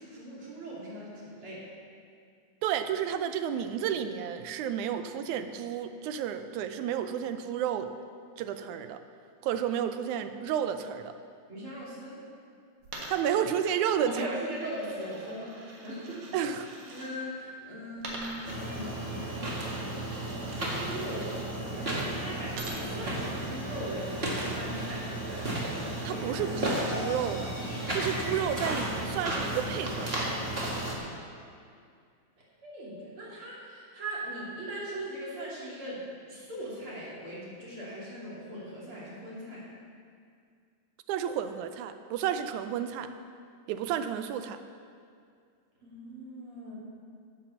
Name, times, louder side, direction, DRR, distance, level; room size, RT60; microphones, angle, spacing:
voice 1, 0.0-1.7 11.5-12.1 14.0-16.3 16.9-19.0 20.4-25.5 32.6-36.0 36.3-39.6 45.8-46.8, right 1 dB, 45° right, -6 dB, 3.5 m, -40 dB
voice 2, 2.6-7.9 8.4-9.0 9.4-11.1 13.1-14.4 16.3-16.7 26.0-27.5 27.9-30.1 41.1-43.1 43.7-44.6, right 9 dB, 90° right, 9 dB, 2.1 m, -31 dB
Coin (dropping), 12.8-17.1 18.0-21.5 22.5-26.2, right 2 dB, 70° right, 2.8 m, -46 dB
sound 1, 18.4-31.0, right 1 dB, 25° right, 1.4 m, -33 dB
sound 2, 26.1-30.0, left 2 dB, 60° left, 3.7 m, -41 dB
10.0 x 8.0 x 7.0 m, 2.3 s
omnidirectional pair, 3.4 m